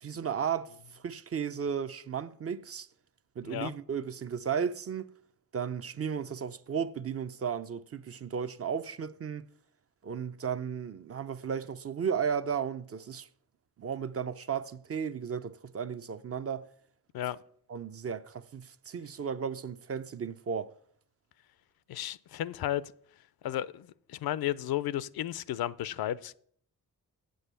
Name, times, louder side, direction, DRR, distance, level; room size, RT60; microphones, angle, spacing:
voice 1, 0.0-2.9 3.4-5.1 5.5-9.5 10.0-13.3 13.8-16.6 17.7-20.7, right 7 dB, 40° right, 0.6 m, -34 dB
voice 2, 21.9-22.9 23.4-26.4, left 12 dB, 80° left, 0.5 m, -33 dB
8.2 x 7.8 x 6.8 m
cardioid pair, 75°, 36 cm